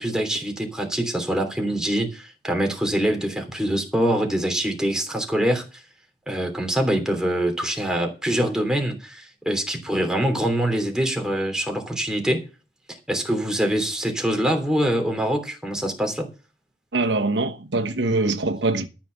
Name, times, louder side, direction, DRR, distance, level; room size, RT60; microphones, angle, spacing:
voice 1, 0.0-5.6 6.3-12.4 13.1-16.3, right 1 dB, 5° right, 3.1 m, -24 dB
voice 2, 16.9-18.9, right 2 dB, 85° right, 1.2 m, -23 dB
13.0 x 5.9 x 7.0 m
head